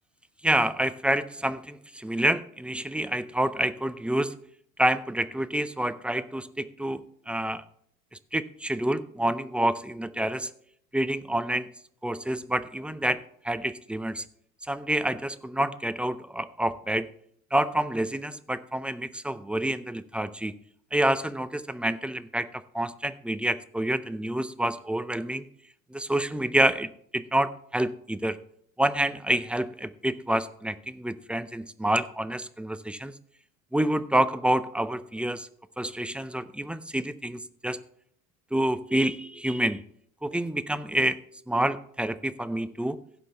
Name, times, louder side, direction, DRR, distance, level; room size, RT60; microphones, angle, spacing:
voice 1, 0.4-4.4 4.8-7.6 8.3-10.5 10.9-11.7 12.0-14.2 14.7-17.1 17.5-20.5 20.9-25.5 25.9-28.4 28.8-33.1 33.7-35.5 35.8-37.8 38.5-39.8 40.2-41.2 41.5-43.0, right 1 dB, 5° right, 13 dB, 0.4 m, -28 dB
16.0 x 5.7 x 3.3 m, 0.65 s
hypercardioid pair, 75°, 43 cm